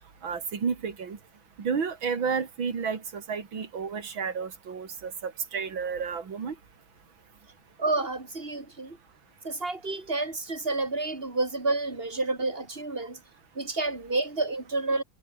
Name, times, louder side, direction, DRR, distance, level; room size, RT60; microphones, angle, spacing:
voice 1, 0.2-1.2 1.6-6.6, right 6 dB, 80° right, 3.5 m, -31 dB
voice 2, 7.8-9.0 9.4-13.2 13.5-15.0, right 3 dB, 30° right, 3.4 m, -29 dB
omnidirectional pair, 2.2 m